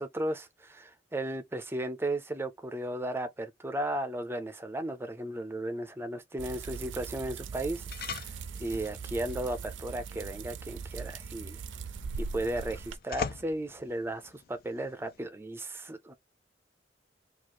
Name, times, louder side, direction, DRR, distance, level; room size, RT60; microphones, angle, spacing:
voice 1, 0.0-8.3 8.6-11.6 12.2-16.1, right 1 dB, 15° right, 0.5 m, -35 dB
sound 1, 6.4-13.0, right 5 dB, 85° right, 0.5 m, -40 dB
sound 2, 7.9-15.3, left 6 dB, 50° left, 0.4 m, -44 dB
3.0 x 2.4 x 4.3 m
head